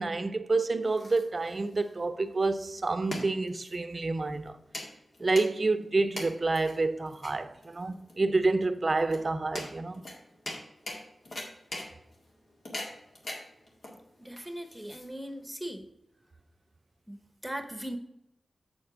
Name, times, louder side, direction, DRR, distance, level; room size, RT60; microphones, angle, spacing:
voice 1, 0.0-4.6 5.2-10.0, right 3 dB, 45° right, 0.6 m, -28 dB
sound 1, 0.5-15.5, left 1 dB, 65° left, 1.8 m, -43 dB
voice 2, 14.2-15.8 17.1-17.2 17.4-18.0, right 1 dB, 5° right, 1.1 m, -39 dB
7.5 x 4.4 x 5.0 m
cardioid pair, 50°, 0 cm